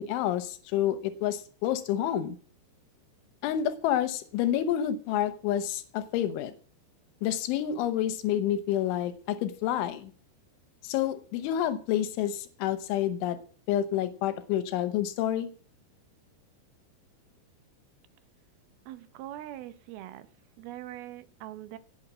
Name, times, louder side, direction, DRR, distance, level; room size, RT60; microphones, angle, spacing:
voice 1, 0.0-2.4 3.4-6.5 7.2-10.1 10.8-13.4 13.7-15.5, left 11 dB, 85° left, 11 dB, 3.4 m, -29 dB
voice 2, 18.9-20.3 20.6-21.8, right 13 dB, 75° right, 12 dB, 2.3 m, -42 dB
18.0 x 6.7 x 7.4 m, 0.43 s
omnidirectional pair, 5.4 m